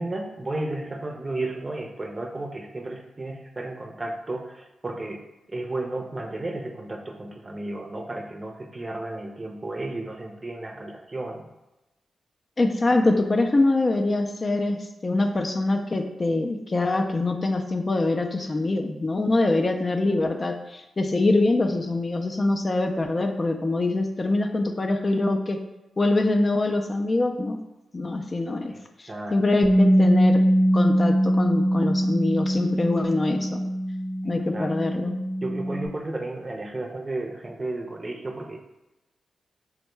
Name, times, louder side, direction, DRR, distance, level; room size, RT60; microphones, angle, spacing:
voice 1, 0.0-5.2 5.5-11.5 28.7-28.8 29.1-29.7 34.2-35.0 35.4-38.6, right 2 dB, 35° right, 2 dB, 0.5 m, -33 dB
voice 2, 12.6-25.6 26.0-27.6 27.9-28.7 29.0-30.4 30.7-33.6 34.2-35.1, left 2 dB, 40° left, 4 dB, 0.4 m, -24 dB
Bass guitar, 29.6-35.9, equal, 5° left, 0.9 m, -22 dB
3.4 x 2.1 x 3.1 m, 1.0 s
supercardioid pair, 40°, 0 cm